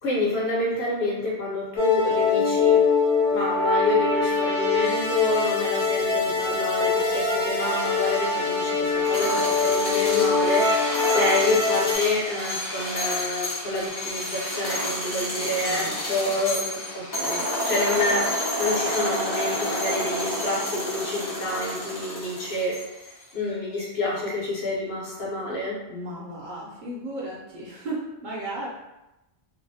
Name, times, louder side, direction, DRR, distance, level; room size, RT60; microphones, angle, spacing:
voice 1, 0.0-2.8 3.3-22.7 23.3-25.8, left 2 dB, 75° left, -5 dB, 1.1 m, -28 dB
sound 1, 1.8-12.0, left 4 dB, 55° left, 0.8 m, -23 dB
sound 2, 8.9-23.1, left 1 dB, 30° left, 0.5 m, -30 dB
voice 2, 15.6-16.0 25.9-28.7, right 1 dB, 55° right, -6 dB, 0.7 m, -35 dB
2.6 x 2.0 x 2.6 m, 0.96 s
omnidirectional pair, 1.1 m